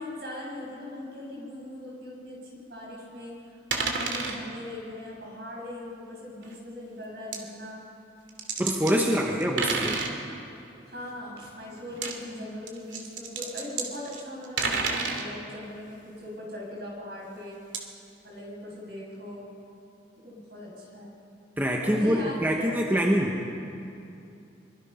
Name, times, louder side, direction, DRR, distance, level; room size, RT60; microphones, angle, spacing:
voice 1, 0.0-7.8 9.0-9.7 10.9-17.6 18.2-19.5 20.2-21.2 21.8-22.7, left 1 dB, 60° right, -3 dB, 7.7 m, -40 dB
sound 1, 3.7-4.4 6.4-6.6 7.3-7.4 8.3-9.0 9.4-10.1 11.9-12.1 12.7-15.3 17.7-17.8, right 4 dB, 80° right, 2.6 m, -30 dB
voice 2, 8.6-9.9 21.6-23.4, equal, 10° right, 0 dB, 1.3 m, -25 dB
24.5 x 24.0 x 5.8 m, 2.6 s
head